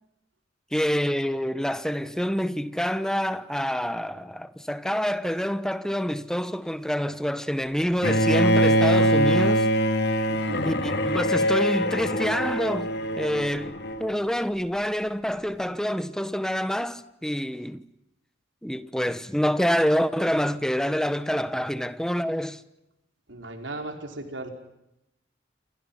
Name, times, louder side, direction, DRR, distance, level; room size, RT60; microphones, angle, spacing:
voice 1, 0.7-9.7 10.6-12.9 13.2-17.8 18.6-22.6, equal, 5° left, 1.2 m, -27 dB
Bowed string instrument, 8.0-14.1, equal, 60° left, 2.5 m, -23 dB
voice 2, 10.3-10.6 23.3-24.5, right 2 dB, 80° right, 5.1 m, -36 dB
29.0 x 28.0 x 5.8 m
head